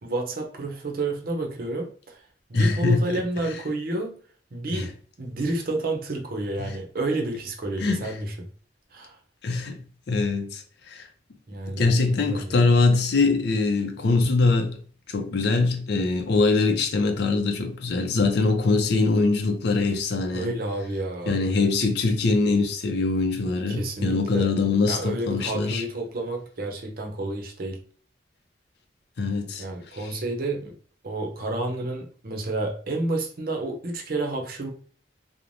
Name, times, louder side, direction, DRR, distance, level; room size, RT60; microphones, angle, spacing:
voice 1, 0.0-2.2 2.5-4.1 4.5-8.5 8.9-9.2 11.5-12.7 20.3-21.4 23.7-24.5 24.9-27.8 29.6-30.7 31.0-34.7, right 2 dB, 55° right, 0.6 m, -30 dB
voice 2, 2.5-3.0 4.7-4.9 6.6-6.8 7.8-8.2 9.4-11.0 11.7-14.8 15.1-20.6 21.3-25.8 29.2-29.6, left 3 dB, 65° left, 0.5 m, -23 dB
3.1 x 2.1 x 2.5 m
head